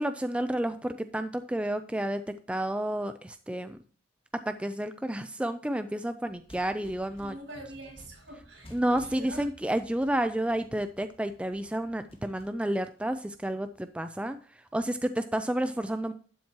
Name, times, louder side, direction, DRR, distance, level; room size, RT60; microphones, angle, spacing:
voice 1, 0.0-3.8 4.5-7.4 8.7-14.4 14.7-16.1, right 1 dB, 5° right, 9 dB, 0.4 m, -30 dB
sound 1, 6.3-13.7, equal, 30° left, 1.7 m, -55 dB
voice 2, 7.2-9.5, right 1 dB, 65° right, 1 dB, 5.6 m, -45 dB
12.0 x 7.3 x 2.9 m, 0.41 s
head